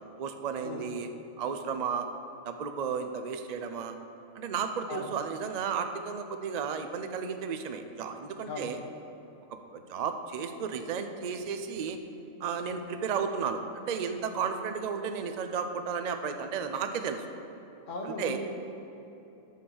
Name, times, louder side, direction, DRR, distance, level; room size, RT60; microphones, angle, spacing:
voice 1, 0.2-1.1 1.4-2.1 2.4-4.0 4.3-8.8 9.7-12.0 12.4-17.2 18.0-18.4, right 6 dB, 60° right, 7 dB, 0.4 m, -33 dB
voice 2, 8.5-8.8 17.9-18.4, left 3 dB, 60° left, 1 dB, 1.5 m, -37 dB
10.0 x 5.4 x 6.9 m, 2.9 s
omnidirectional pair, 1.5 m